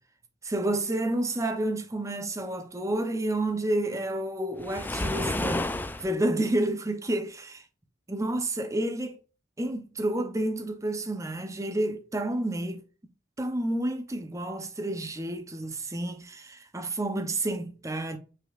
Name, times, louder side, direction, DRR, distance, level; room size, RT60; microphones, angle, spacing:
voice 1, 0.4-5.7 6.0-7.6 8.1-9.2 9.6-12.8 13.4-18.2, right 1 dB, 15° right, 0.7 m, -30 dB
Waves surf, 4.6-6.1, left 2 dB, 10° left, 0.3 m, -30 dB
5.5 x 3.8 x 2.4 m
head